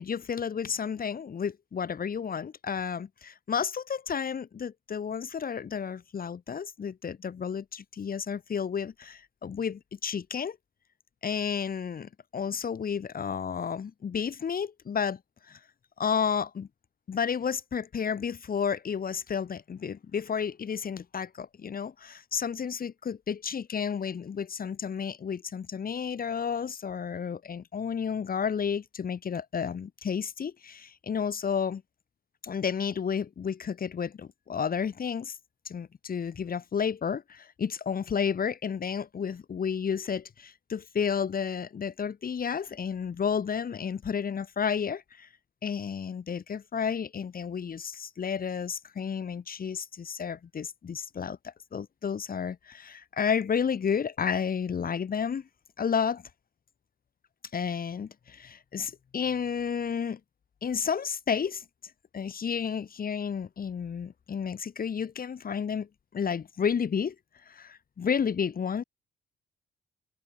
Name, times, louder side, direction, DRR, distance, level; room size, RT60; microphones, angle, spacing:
voice 1, 0.0-10.6 11.2-15.2 15.5-15.6 16.0-16.7 17.1-31.8 32.4-35.4 35.7-45.3 45.6-55.4 55.8-56.2 57.5-60.2 60.6-61.6 62.1-67.2 67.5-68.8, left 7 dB, 45° left, 3.8 m, -31 dB
cardioid pair, 90°, 20 cm